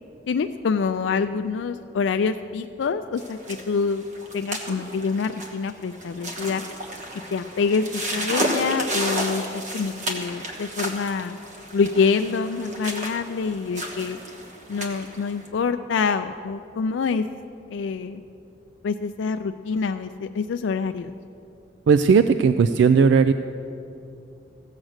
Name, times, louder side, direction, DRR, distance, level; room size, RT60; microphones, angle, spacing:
voice 1, 0.3-4.0 4.3-6.6 7.3-11.4 11.7-14.2 14.7-17.3 17.7-18.2 18.8-21.1, left 5 dB, 80° left, 8 dB, 0.4 m, -26 dB
sound 1, 3.2-15.5, right 1 dB, 45° right, 1.3 m, -32 dB
voice 2, 21.9-23.3, right 5 dB, 70° right, 12 dB, 0.3 m, -16 dB
15.0 x 7.5 x 6.4 m, 2.7 s
head